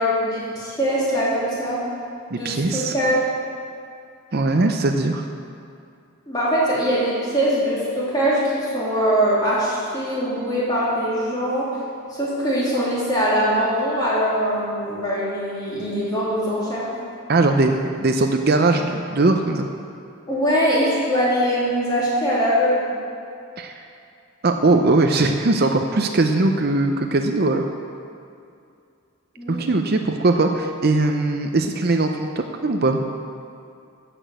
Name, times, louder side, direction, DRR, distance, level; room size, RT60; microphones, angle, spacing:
voice 1, 0.0-1.8 2.3-3.2 6.3-11.7 12.1-16.8 20.3-22.9 29.4-29.6, equal, 20° left, -8 dB, 3.1 m, -22 dB
voice 2, 2.3-2.9 4.3-5.2 17.3-19.7 23.6-23.8 24.4-27.6 29.5-32.3 32.6-33.0, right 2 dB, 45° right, 5 dB, 0.6 m, -20 dB
12.5 x 6.0 x 8.1 m, 2.5 s
head